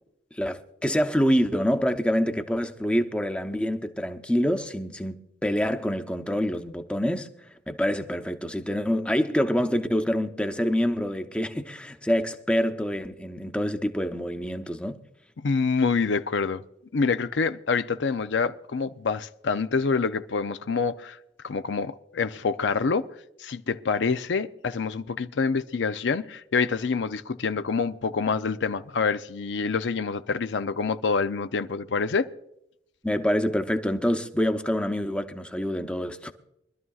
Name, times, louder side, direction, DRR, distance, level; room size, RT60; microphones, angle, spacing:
voice 1, 0.3-7.3 7.7-15.0 33.0-36.3, equal, 5° left, 0.8 m, -26 dB
voice 2, 15.4-16.6 16.9-21.2 21.4-23.1 23.4-32.3, left 5 dB, 90° left, 0.6 m, -26 dB
24.0 x 12.5 x 2.4 m
head